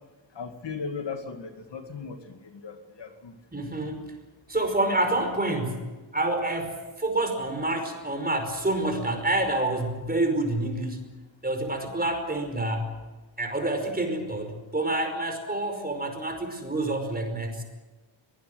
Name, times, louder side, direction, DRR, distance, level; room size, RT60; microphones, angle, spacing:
voice 1, 0.4-2.2 2.5-3.3, left 5 dB, 60° left, 6 dB, 2.3 m, -37 dB
voice 2, 3.5-4.1 4.5-11.1 11.4-12.9 13.4-17.6, right 2 dB, 20° right, 5 dB, 5.2 m, -28 dB
23.5 x 19.0 x 8.0 m, 1.2 s
wide cardioid pair, 145°, 47 cm